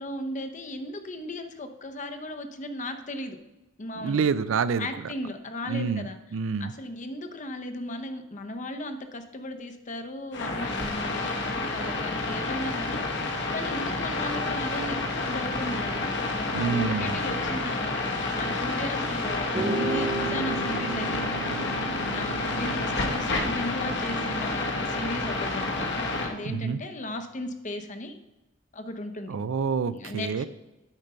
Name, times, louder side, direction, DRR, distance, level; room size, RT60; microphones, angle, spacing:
voice 1, 0.0-3.4 3.8-4.3 4.8-6.2 6.6-21.2 22.1-28.2 28.7-29.3 29.9-30.5, left 1 dB, 40° left, 7 dB, 0.7 m, -36 dB
voice 2, 4.0-4.9 5.7-6.7 16.5-17.2 26.4-26.8 29.3-30.5, right 5 dB, 75° right, 15 dB, 0.4 m, -27 dB
sound 1, 10.3-26.3, left 2 dB, 60° left, 1.2 m, -29 dB
sound 2, 19.5-27.2, right 3 dB, 30° right, 1.2 m, -36 dB
9.0 x 5.3 x 5.4 m, 1.0 s
head